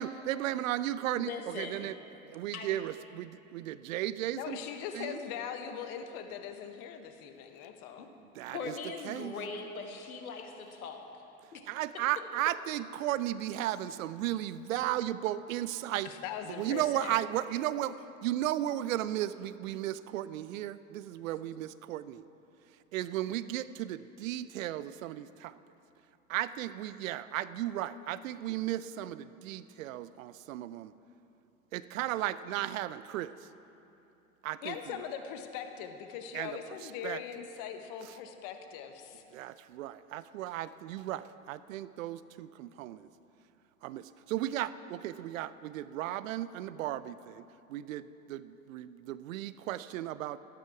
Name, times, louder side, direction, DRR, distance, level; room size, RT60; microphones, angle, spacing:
voice 1, 0.0-1.9 2.3-4.6 4.9-5.2 8.3-8.8 9.0-9.3 11.7-16.1 16.5-22.2 22.9-25.6 26.3-30.9 31.7-33.3 34.4-35.0 36.3-37.2 38.1-38.2 39.3-43.1 43.8-47.4 47.7-50.4, right 13 dB, 70° right, 15 dB, 0.6 m, -35 dB
voice 2, 1.2-2.0 2.5-2.8 8.0-8.1 8.5-11.2 11.5-11.6, left 4 dB, 85° left, 4 dB, 1.4 m, -41 dB
voice 3, 4.3-8.1 16.0-17.2 34.6-39.2, left 8 dB, 50° left, 7 dB, 1.3 m, -41 dB
13.0 x 13.0 x 4.8 m, 2.9 s
hypercardioid pair, 80°, 42 cm